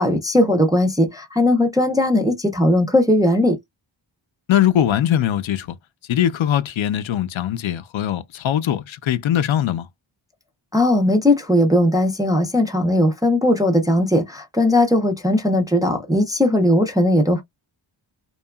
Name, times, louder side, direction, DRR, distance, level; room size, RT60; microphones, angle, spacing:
voice 1, 0.0-3.6 10.7-17.4, left 1 dB, 10° right, 0.3 m, -18 dB
voice 2, 4.5-5.8 6.1-9.9, left 10 dB, 75° left, 0.6 m, -21 dB
2.8 x 2.3 x 2.2 m
wide cardioid pair, 165°, 48 cm